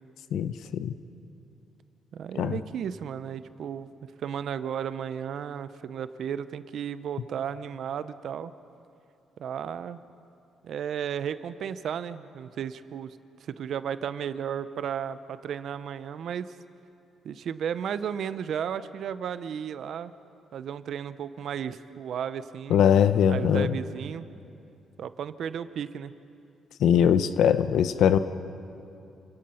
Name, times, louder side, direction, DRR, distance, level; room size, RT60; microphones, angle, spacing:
voice 1, 0.3-0.9 2.4-2.6 22.7-23.7 26.8-28.2, left 8 dB, 75° left, 12 dB, 0.8 m, -21 dB
voice 2, 2.1-3.9 4.2-8.5 9.4-10.0 10.6-16.5 17.2-20.1 20.5-22.8 23.3-24.3 25.0-26.1, right 8 dB, 65° right, 13 dB, 0.8 m, -34 dB
28.5 x 17.0 x 5.7 m, 2.6 s
cardioid pair, 90°, 0 cm